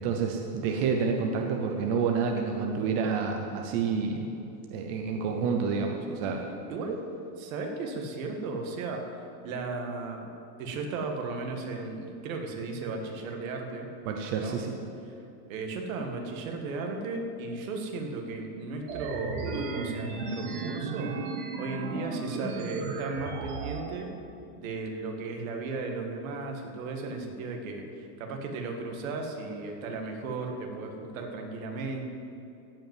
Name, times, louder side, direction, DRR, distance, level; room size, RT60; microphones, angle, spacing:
voice 1, 0.0-4.3 4.7-6.4 14.1-14.7, right 5 dB, 25° right, 3 dB, 0.5 m, -29 dB
voice 2, 6.7-7.0 7.4-10.3 10.6-13.9 14.4-14.6 15.5-21.1 21.6-24.1 24.6-32.0, right 3 dB, 60° right, 3 dB, 2.0 m, -35 dB
sound 1, 18.9-23.9, right 4 dB, 40° right, 1.3 m, -35 dB
15.5 x 5.5 x 9.4 m, 2.7 s
supercardioid pair, 180°, 46 cm